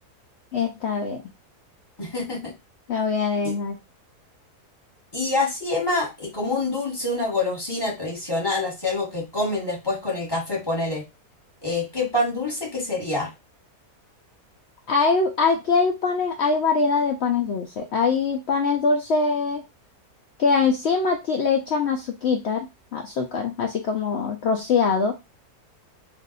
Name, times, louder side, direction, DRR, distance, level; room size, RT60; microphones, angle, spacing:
voice 1, 0.5-1.2 2.9-3.8 14.9-19.6 20.4-25.1, left 4 dB, 80° left, 2 dB, 0.6 m, -23 dB
voice 2, 2.0-2.5 3.4-3.5 5.1-11.0 11.6-13.3, left 2 dB, 15° left, -3 dB, 1.2 m, -26 dB
2.6 x 2.5 x 3.9 m, 0.24 s
omnidirectional pair, 1.7 m